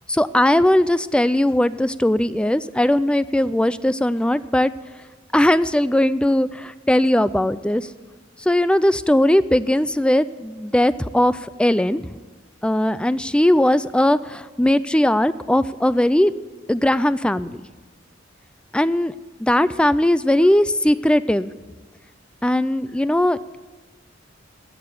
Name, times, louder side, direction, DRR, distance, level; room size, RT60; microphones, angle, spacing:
voice 1, 0.1-4.7 5.3-7.9 8.4-12.1 12.6-16.3 16.7-17.6 18.7-19.1 19.4-21.5 22.4-23.6, left 1 dB, 5° left, 15 dB, 0.3 m, -19 dB
16.0 x 6.8 x 9.6 m, 1.3 s
head